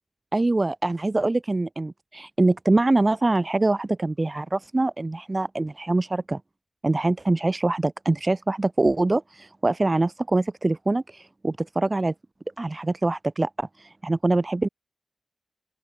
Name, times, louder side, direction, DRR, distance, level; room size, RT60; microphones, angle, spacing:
voice 1, 0.3-6.4 6.8-12.1 12.6-14.7, right 2 dB, 25° right, 4.4 m, -24 dB
open air
wide cardioid pair, 140°, 0 cm